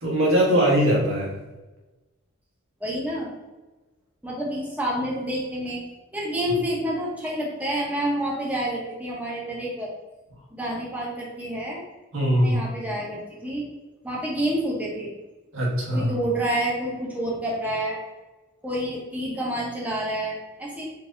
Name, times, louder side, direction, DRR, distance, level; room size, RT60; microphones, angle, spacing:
voice 1, 0.0-1.4 12.1-12.6 15.5-16.1, equal, 70° right, -4 dB, 1.5 m, -21 dB
voice 2, 2.8-3.3 4.2-5.8 6.1-9.9 10.5-11.8 12.4-13.7 14.0-15.1 15.9-18.0 18.6-20.9, right 1 dB, 5° right, -4 dB, 1.0 m, -28 dB
4.6 x 2.7 x 3.9 m, 1.2 s
head